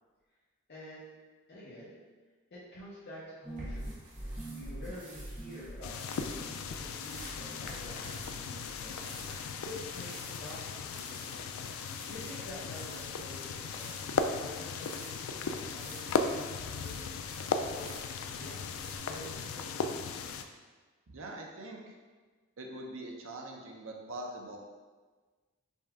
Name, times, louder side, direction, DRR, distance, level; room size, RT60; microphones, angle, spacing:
voice 1, 0.7-1.2 1.5-2.0 2.5-3.9 4.4-6.4 6.7-9.0 9.6-11.4 12.1-13.9 14.4-17.1 17.7-18.0 18.3-18.7 19.0-20.0, left 1 dB, 50° left, -9 dB, 0.9 m, -48 dB
sound 1, 3.4-8.9 9.1-9.9, right 1 dB, 5° left, 0.6 m, -44 dB
sound 2, 3.4-19.0, right 1 dB, 40° right, 1.3 m, -52 dB
sound 3, 5.8-20.4, left 5 dB, 75° left, 0.3 m, -37 dB
voice 2, 21.1-21.8 22.6-24.6, right 1 dB, 65° right, 1 dB, 0.6 m, -43 dB
5.4 x 2.3 x 3.5 m, 1.4 s
head